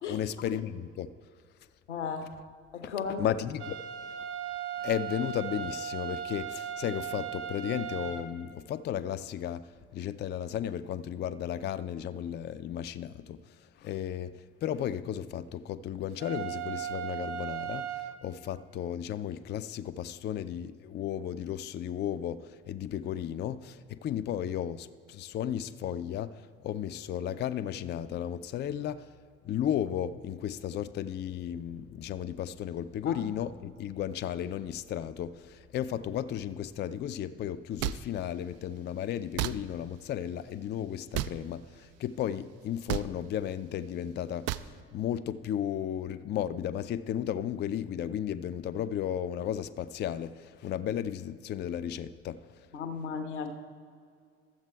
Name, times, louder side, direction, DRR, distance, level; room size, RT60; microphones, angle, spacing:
voice 1, 0.1-1.1 2.8-2.9 3.2-3.8 4.8-9.7 9.9-13.4 13.8-14.4 14.6-29.1 29.4-52.4, left 10 dB, 30° left, 0.4 m, -34 dB
voice 2, 1.9-2.3 2.7-3.3 33.0-33.2 52.7-53.5, left 6 dB, 80° left, 1.0 m, -35 dB
sound 1, 3.6-8.3 16.2-18.1, right 9 dB, 80° right, 0.8 m, -37 dB
sound 2, 37.8-38.0 39.4-39.5 41.1-41.3 42.9-43.1 44.5-44.7, right 14 dB, 45° right, 0.4 m, -30 dB
13.0 x 7.3 x 4.5 m
figure-of-eight pair, 50°, 35 cm